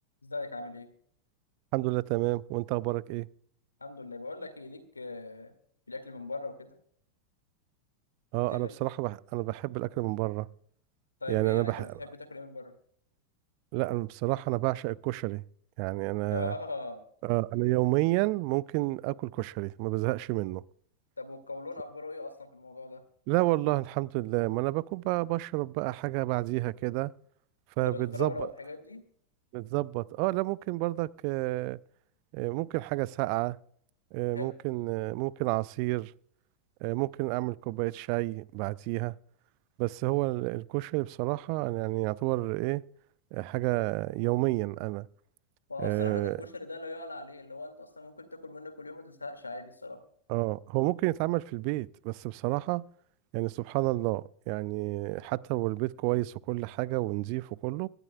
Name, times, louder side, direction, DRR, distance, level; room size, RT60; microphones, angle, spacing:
voice 1, 0.2-0.9 3.8-5.5 5.9-6.7 8.4-8.8 11.2-12.7 16.3-17.0 21.2-23.0 27.8-29.0 34.3-34.5 45.7-50.0, left 3 dB, 80° left, 2.1 m, -40 dB
voice 2, 1.7-3.3 8.3-10.5 11.3-11.9 13.7-15.4 15.8-16.5 17.2-20.6 23.3-27.1 27.8-28.3 29.5-31.8 32.3-33.6 34.1-36.1 36.8-39.1 39.8-42.8 43.3-45.1 45.8-46.4 50.3-52.8 53.3-57.9, right 21 dB, 45° right, 0.4 m, -30 dB
25.0 x 11.5 x 2.3 m
figure-of-eight pair, 90°, 0 cm